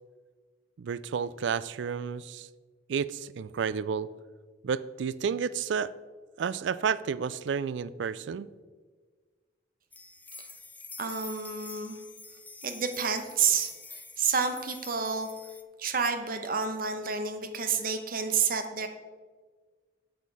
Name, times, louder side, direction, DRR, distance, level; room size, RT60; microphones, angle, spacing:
voice 1, 0.8-2.5 2.9-4.1 4.6-5.9 6.4-8.5, right 6 dB, 70° right, 17 dB, 0.3 m, -31 dB
sound 1, 9.9-15.6, left 3 dB, 10° left, 0.4 m, -47 dB
voice 2, 11.0-12.0 12.6-15.3 15.8-18.9, right 6 dB, 50° right, 7 dB, 0.9 m, -29 dB
8.0 x 7.5 x 4.8 m, 1.5 s
head